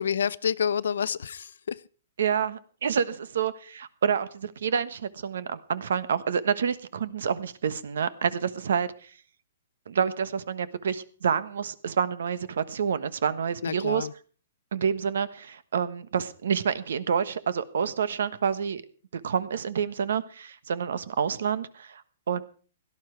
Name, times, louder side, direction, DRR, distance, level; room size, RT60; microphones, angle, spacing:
voice 1, 0.0-1.8 13.6-14.1, left 7 dB, 80° left, 0.6 m, -28 dB
voice 2, 2.2-9.1 9.9-14.1 14.7-18.8 19.1-22.0 22.3-22.4, right 7 dB, 75° right, 1.3 m, -28 dB
17.0 x 12.0 x 4.6 m
hypercardioid pair, 165°, 0 cm